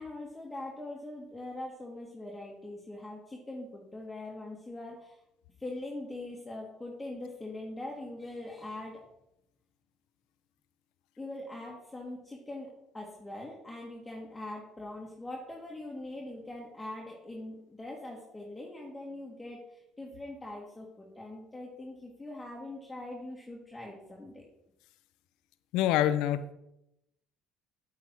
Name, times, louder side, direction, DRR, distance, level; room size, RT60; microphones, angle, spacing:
voice 1, 0.0-5.2 5.6-9.0 11.2-24.4, left 2 dB, 15° left, -3 dB, 2.3 m, -42 dB
voice 2, 25.7-26.5, left 11 dB, 70° left, 13 dB, 0.6 m, -26 dB
8.5 x 7.8 x 4.6 m, 0.83 s
hypercardioid pair, 60°, 0 cm